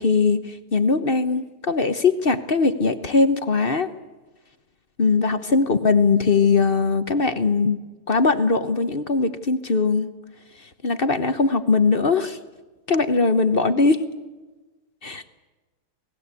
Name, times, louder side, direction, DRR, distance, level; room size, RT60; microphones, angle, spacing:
voice 1, 0.0-3.9 5.0-7.8 8.1-10.1 10.8-12.4 12.9-14.0 15.0-15.2, left 4 dB, 40° left, 11 dB, 0.8 m, -20 dB
28.5 x 20.5 x 8.3 m, 1.2 s
omnidirectional pair, 2.4 m